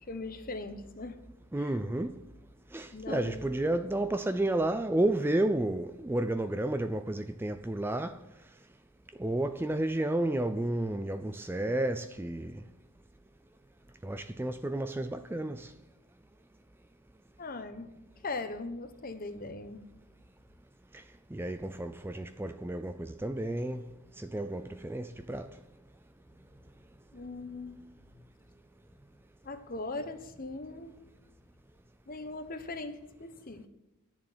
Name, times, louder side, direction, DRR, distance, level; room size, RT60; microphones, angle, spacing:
voice 1, 0.0-1.2 1.6-1.8 2.9-3.3 17.4-17.9 18.2-19.8 27.1-27.8 29.4-31.0 32.1-33.7, left 3 dB, 40° left, 1.0 m, -40 dB
voice 2, 1.5-2.2 2.7-8.2 9.2-12.6 14.0-15.7 20.9-21.0 21.3-23.9 24.2-25.5, right 1 dB, 10° right, 0.4 m, -31 dB
11.0 x 7.1 x 7.9 m
head